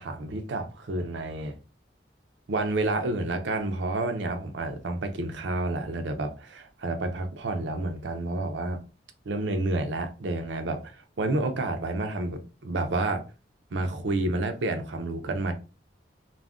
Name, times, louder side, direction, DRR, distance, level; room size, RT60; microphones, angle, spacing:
voice 1, 0.0-1.5 2.5-8.8 9.3-13.2 13.7-15.5, right 2 dB, 85° right, 0.5 m, -29 dB
2.4 x 2.1 x 3.5 m
head